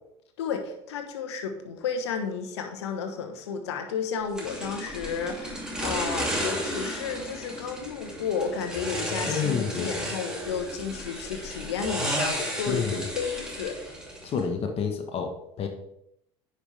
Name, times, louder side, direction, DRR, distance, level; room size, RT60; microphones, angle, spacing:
voice 1, 0.4-13.8, left 6 dB, 85° left, 6 dB, 1.1 m, -32 dB
sound 1, 4.4-14.5, equal, 5° right, 2.6 m, -33 dB
voice 2, 9.3-9.9 12.7-13.0 14.2-15.7, left 6 dB, 45° left, 4 dB, 1.2 m, -29 dB
9.6 x 5.3 x 3.4 m, 0.78 s
hypercardioid pair, 75°, 14 cm